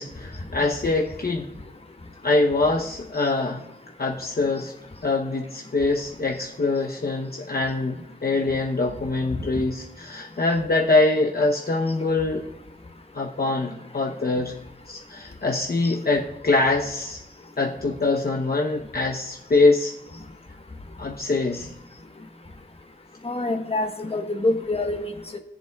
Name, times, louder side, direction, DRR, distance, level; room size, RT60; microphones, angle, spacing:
voice 1, 0.0-1.5 2.2-3.6 4.0-4.7 5.0-12.4 13.1-14.5 14.9-17.2 17.6-19.9 21.0-21.7, left 3 dB, 50° left, -1 dB, 0.9 m, -24 dB
voice 2, 23.2-25.4, left 2 dB, 30° left, 4 dB, 1.2 m, -26 dB
19.5 x 7.5 x 2.3 m, 0.92 s
wide cardioid pair, 80°, 19 cm